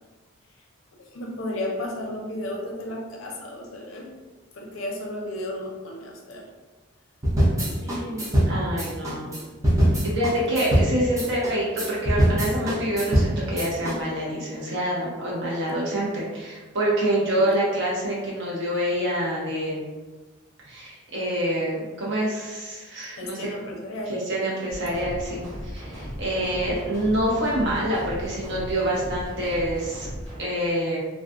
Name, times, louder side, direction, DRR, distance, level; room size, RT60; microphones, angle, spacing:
voice 1, 1.0-4.1 4.5-6.5 10.5-10.7 17.4-17.5 23.2-24.1, left 1 dB, 70° left, 0 dB, 0.5 m, -33 dB
sound 1, 7.2-14.0, equal, 15° right, 0.6 m, -23 dB
voice 2, 7.8-9.3 10.0-19.9 20.6-23.4 24.1-30.1 30.4-31.0, right 1 dB, 60° right, -6 dB, 0.8 m, -26 dB
sound 2, 24.7-30.4, equal, 45° right, 1.5 m, -36 dB
2.3 x 2.2 x 2.5 m, 1.2 s
head